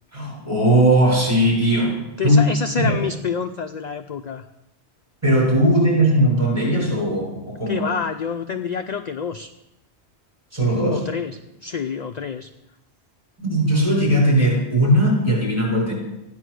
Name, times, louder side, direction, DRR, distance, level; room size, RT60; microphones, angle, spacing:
voice 1, 0.1-2.0 2.2-2.4 2.8-3.0 5.2-7.9 10.5-11.1 13.4-15.9, right 1 dB, 30° right, -4 dB, 6.4 m, -18 dB
voice 2, 2.2-4.4 7.7-9.5 10.9-11.3 11.6-12.5, left 6 dB, 50° left, 8 dB, 0.6 m, -27 dB
14.5 x 10.0 x 6.4 m, 0.94 s
omnidirectional pair, 1.1 m